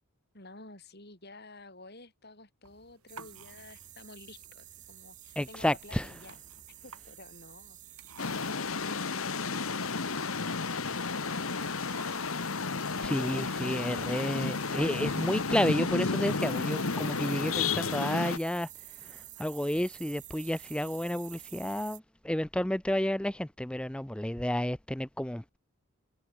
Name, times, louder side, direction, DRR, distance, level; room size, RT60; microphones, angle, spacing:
voice 1, 0.3-6.4 6.8-7.8 8.2-10.4 11.1-12.7, left 2 dB, 45° left, 4.8 m, -51 dB
sound 1, 2.6-15.3, right 4 dB, 90° right, 6.1 m, -57 dB
sound 2, 3.1-22.0, right 13 dB, 35° right, 1.6 m, -51 dB
voice 2, 5.4-6.1 13.0-18.7 19.0-25.6, left 1 dB, 5° left, 0.5 m, -31 dB
sound 3, 8.2-18.4, left 4 dB, 70° left, 1.3 m, -32 dB
head